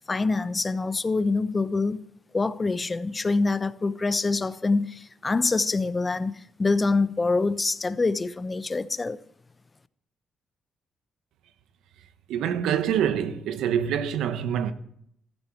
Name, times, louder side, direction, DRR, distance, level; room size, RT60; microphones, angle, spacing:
voice 1, 0.1-2.0 2.3-9.2, left 3 dB, 25° left, 0.9 m, -25 dB
voice 2, 12.3-14.7, right 9 dB, 85° right, 1.1 m, -25 dB
16.0 x 14.0 x 4.6 m
cardioid pair, 90°, 0 cm